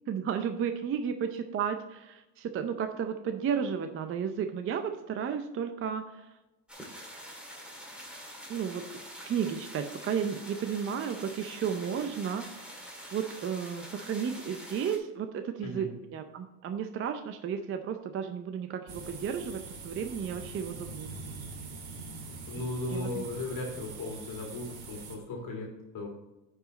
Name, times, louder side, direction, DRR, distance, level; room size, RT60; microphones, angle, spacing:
voice 1, 0.1-6.3 8.5-8.8 9.2-12.5 13.1-21.1 22.5-22.7 22.9-23.2, right 7 dB, 30° right, 7 dB, 0.5 m, -33 dB
sound 1, 6.7-15.0, equal, ahead, 1.9 m, -46 dB
sound 2, 18.9-25.2, right 4 dB, 50° right, 2.2 m, -43 dB
voice 2, 22.5-26.1, left 2 dB, 40° left, 0 dB, 2.0 m, -36 dB
9.7 x 4.9 x 4.0 m, 1.0 s
supercardioid pair, 120°, 48 cm